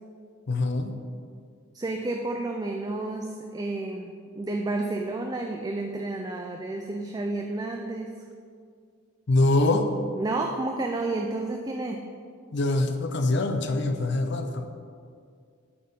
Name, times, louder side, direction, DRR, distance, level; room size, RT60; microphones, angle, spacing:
voice 1, 0.5-1.0 9.3-9.9 12.5-14.7, left 2 dB, 55° left, 6 dB, 0.5 m, -24 dB
voice 2, 1.7-8.1 10.2-12.0, right 2 dB, 20° right, 2 dB, 0.3 m, -31 dB
8.5 x 4.3 x 5.3 m, 2.2 s
head